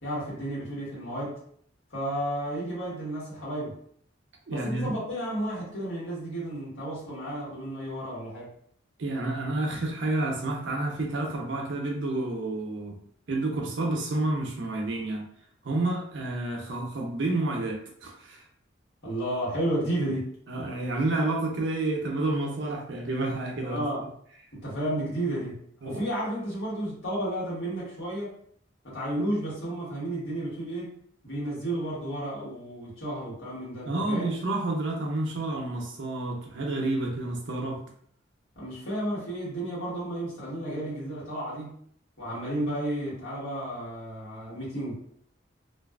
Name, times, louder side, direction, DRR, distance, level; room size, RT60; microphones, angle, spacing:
voice 1, 0.0-1.4 1.9-3.8 4.5-8.5 19.0-20.3 23.6-24.1 24.5-28.3 28.8-30.9 31.2-34.3 38.5-41.7 42.2-44.9, right 1 dB, 75° left, -7 dB, 1.4 m, -32 dB
voice 2, 4.5-4.9 9.0-13.0 13.3-15.2 15.6-18.4 20.5-23.8 25.8-26.0 33.8-37.8, right 2 dB, 70° right, 1 dB, 0.6 m, -29 dB
2.5 x 2.3 x 2.3 m, 0.63 s
head